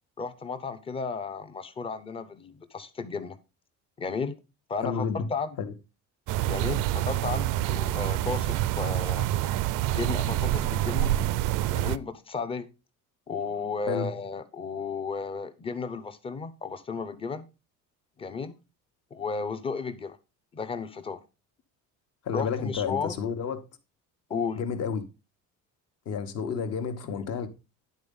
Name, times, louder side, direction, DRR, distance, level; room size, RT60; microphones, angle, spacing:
voice 1, 0.2-3.4 4.0-4.4 4.7-5.6 6.4-9.3 9.9-11.1 11.7-12.7 13.3-17.5 18.2-18.5 19.1-20.2 20.5-21.2 22.3-23.1 24.3-24.6 27.1-27.2, left 5 dB, 15° left, 0.7 m, -34 dB
voice 2, 4.8-5.3 5.6-5.7 13.9-14.1 22.2-23.6 24.6-25.1 26.0-27.5, left 6 dB, 50° left, 1.3 m, -30 dB
sound 1, 6.3-12.0, right 14 dB, 75° right, 0.5 m, -27 dB
10.5 x 4.2 x 5.4 m
cardioid pair, 175°, 32 cm